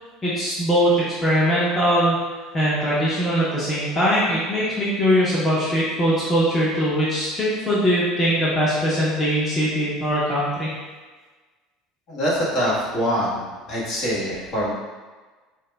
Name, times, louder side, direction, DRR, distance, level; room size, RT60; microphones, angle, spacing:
voice 1, 0.2-2.2 2.5-10.7, equal, 25° left, -8 dB, 0.9 m, -21 dB
voice 2, 12.1-14.7, equal, 55° left, -7 dB, 1.2 m, -24 dB
4.6 x 2.1 x 2.3 m, 1.3 s
hypercardioid pair, 85°, 0 cm